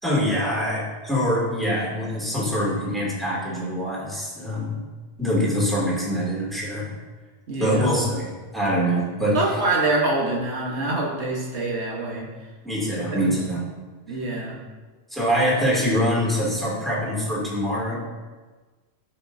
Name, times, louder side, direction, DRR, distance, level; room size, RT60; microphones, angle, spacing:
voice 1, 0.0-4.8 5.2-7.0 7.6-9.6 12.6-13.6 14.1-14.3 15.1-17.9, equal, ahead, -6 dB, 2.5 m, -24 dB
voice 2, 7.5-7.9 9.3-12.3 13.0-13.2 14.1-14.6, right 2 dB, 80° right, -2 dB, 1.5 m, -25 dB
13.0 x 5.4 x 2.7 m, 1.3 s
omnidirectional pair, 1.1 m